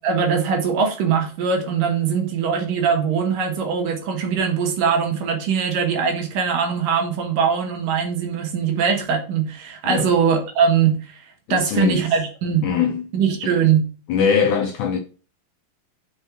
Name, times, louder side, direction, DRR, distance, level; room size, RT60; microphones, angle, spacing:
voice 1, 0.0-11.2 11.5-12.7 13.1-13.9, right 6 dB, 65° right, 3.0 m, -21 dB
voice 2, 11.5-12.0 12.6-13.1 13.4-13.6 14.1-15.0, left 6 dB, 75° left, 1.8 m, -21 dB
6.3 x 5.3 x 6.2 m
omnidirectional pair, 4.2 m